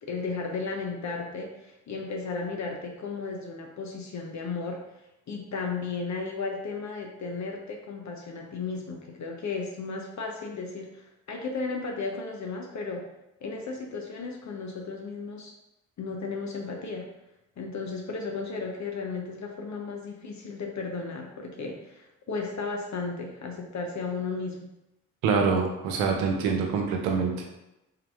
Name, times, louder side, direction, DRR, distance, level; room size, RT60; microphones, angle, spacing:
voice 1, 0.0-4.8 5.3-13.0 13.4-15.5 16.0-17.1 17.6-24.7, left 4 dB, 50° left, 1 dB, 0.7 m, -34 dB
voice 2, 25.2-27.6, right 5 dB, 90° right, 2 dB, 0.7 m, -26 dB
3.7 x 2.8 x 3.3 m, 0.91 s
hypercardioid pair, 45°, 36 cm